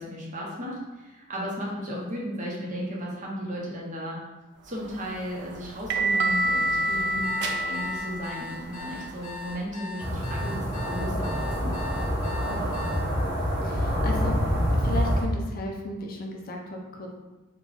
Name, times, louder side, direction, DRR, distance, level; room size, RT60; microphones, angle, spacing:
voice 1, 0.0-4.3 4.6-7.2 7.6-11.7, equal, 35° right, -3 dB, 0.8 m, -35 dB
sound 1, 4.8-9.6, right 2 dB, 55° right, 0.3 m, -28 dB
voice 2, 6.9-7.4 10.4-10.6 12.5-12.7 13.6-14.4 14.8-17.1, left 1 dB, 45° left, 1 dB, 0.5 m, -35 dB
sound 2, 7.2-13.0, left 3 dB, 75° left, 0.9 m, -40 dB
sound 3, 10.0-15.2, equal, 5° left, 0.8 m, -26 dB
3.8 x 2.3 x 3.3 m, 1.1 s
head